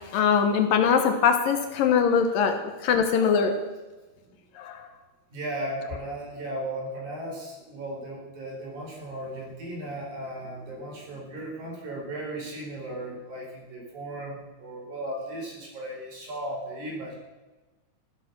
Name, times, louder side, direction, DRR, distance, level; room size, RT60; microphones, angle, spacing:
voice 1, 0.1-3.5 4.6-4.9, left 6 dB, 70° left, 6 dB, 2.5 m, -22 dB
voice 2, 5.3-17.2, right 1 dB, 50° right, -1 dB, 5.5 m, -36 dB
15.0 x 13.0 x 6.0 m, 1.2 s
omnidirectional pair, 4.4 m